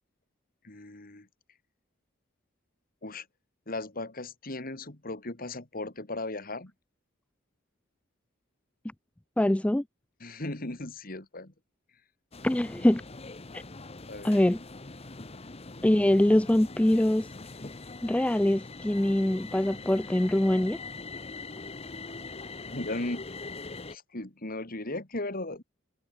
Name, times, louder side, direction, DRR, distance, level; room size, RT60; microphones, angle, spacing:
voice 1, 0.6-1.3 3.0-3.3 3.7-6.7 10.2-11.5 14.1-14.4 22.6-23.2 23.9-25.6, left 2 dB, 45° left, 2.6 m, -37 dB
voice 2, 9.4-9.8 12.4-13.0 13.5-13.6 14.2-14.6 15.8-17.3 18.0-20.8, left 1 dB, 5° left, 0.3 m, -23 dB
sound 1, 12.3-24.0, left 3 dB, 30° left, 1.2 m, -42 dB
head